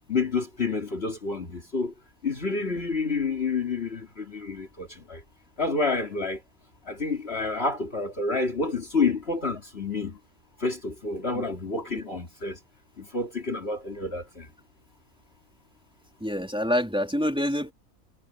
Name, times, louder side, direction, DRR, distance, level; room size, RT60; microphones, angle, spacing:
voice 1, 0.1-1.9 2.2-5.2 5.6-6.4 6.9-10.2 10.6-12.6 13.0-14.5, left 3 dB, 45° left, 3.0 m, -29 dB
voice 2, 16.2-17.7, equal, 5° right, 4.0 m, -27 dB
omnidirectional pair, 1.5 m